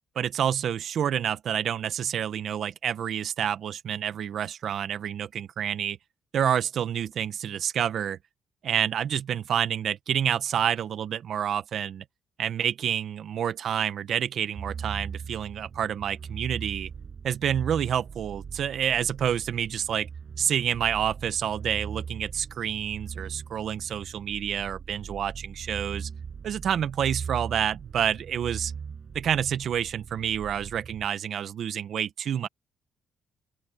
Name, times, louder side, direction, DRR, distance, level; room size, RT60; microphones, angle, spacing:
voice 1, 0.1-6.0 6.3-8.2 8.6-12.0 12.4-16.9 17.2-20.1 20.4-26.1 26.4-28.7 29.1-32.5, right 9 dB, 65° right, 1.2 m, -28 dB
sound 1, 14.6-31.1, right 6 dB, 45° right, 6.8 m, -40 dB
open air
cardioid pair, 100°, 0 cm